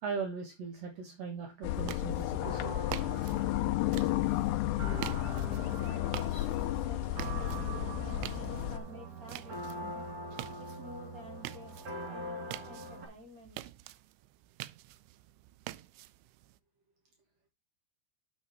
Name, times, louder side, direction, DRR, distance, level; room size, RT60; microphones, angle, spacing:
voice 1, 0.0-2.8, right 5 dB, 65° right, 1.6 m, -39 dB
sound 1, 1.6-8.8, left 14 dB, 85° left, 2.7 m, -32 dB
sound 2, 1.7-16.6, right 17 dB, 85° right, 2.8 m, -47 dB
sound 3, 2.4-13.1, right 2 dB, 40° right, 3.9 m, -43 dB
voice 2, 5.5-10.1 10.6-11.8 12.1-13.6, left 2 dB, 20° right, 3.6 m, -50 dB
6.9 x 6.9 x 4.6 m
omnidirectional pair, 5.0 m